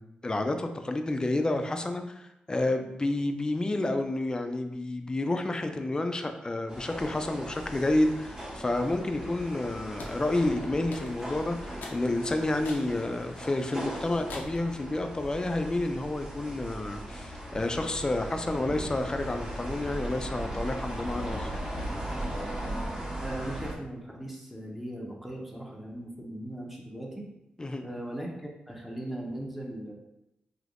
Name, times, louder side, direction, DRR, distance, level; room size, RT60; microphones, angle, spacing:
voice 1, 0.0-21.5 27.6-27.8, left 2 dB, 25° left, 6 dB, 0.4 m, -30 dB
sound 1, 6.7-23.7, right 1 dB, 25° right, 1.0 m, -38 dB
sound 2, 10.0-10.2 10.9-11.3 11.8-12.0 12.6-12.9 13.4-13.5 14.3-14.7, left 3 dB, 85° left, 0.5 m, -43 dB
voice 2, 23.2-27.3 27.8-28.3 28.7-29.9, right 1 dB, 5° right, -2 dB, 0.7 m, -38 dB
3.3 x 2.8 x 2.5 m, 0.89 s
cardioid pair, 60°, 3 cm